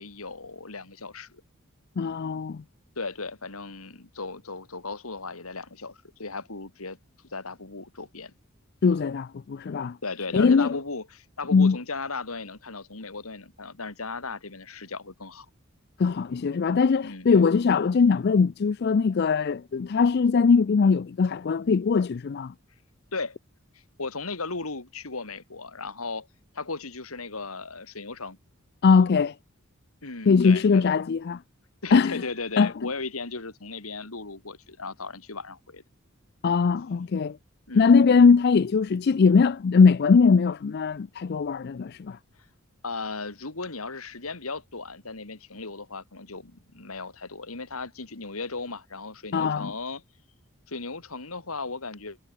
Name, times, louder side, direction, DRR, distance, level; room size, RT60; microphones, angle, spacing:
voice 1, 0.0-1.4 3.0-7.0 7.3-8.3 10.0-15.5 17.0-17.5 23.1-23.4 24.0-26.3 26.5-28.4 30.0-30.9 31.8-35.8 37.7-37.9 42.8-50.0 50.7-52.2, left 3 dB, 85° left, 2.8 m, -36 dB
voice 2, 2.0-2.6 8.8-10.0 10.3-10.8 11.5-11.8 16.0-22.5 28.8-29.3 30.3-31.4 31.9-32.2 32.6-32.7 36.4-37.4 37.8-42.2 49.3-49.7, left 5 dB, 50° left, 0.4 m, -21 dB
head